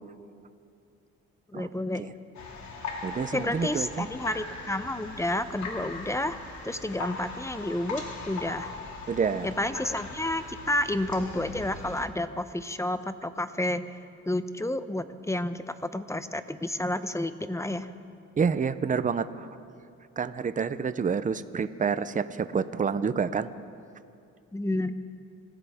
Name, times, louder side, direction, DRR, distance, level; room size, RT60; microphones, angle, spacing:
voice 1, 1.5-2.0 3.3-6.4 6.6-8.8 9.4-14.0 14.3-17.9 24.5-25.0, left 1 dB, 10° left, 11 dB, 0.7 m, -30 dB
sound 1, 2.3-12.0, left 3 dB, 70° left, 2.6 m, -40 dB
voice 2, 3.0-4.1 9.1-9.5 18.4-19.5 20.2-23.5, right 6 dB, 25° right, 13 dB, 0.6 m, -28 dB
27.0 x 15.0 x 3.6 m, 2.5 s
cardioid pair, 90°, 30 cm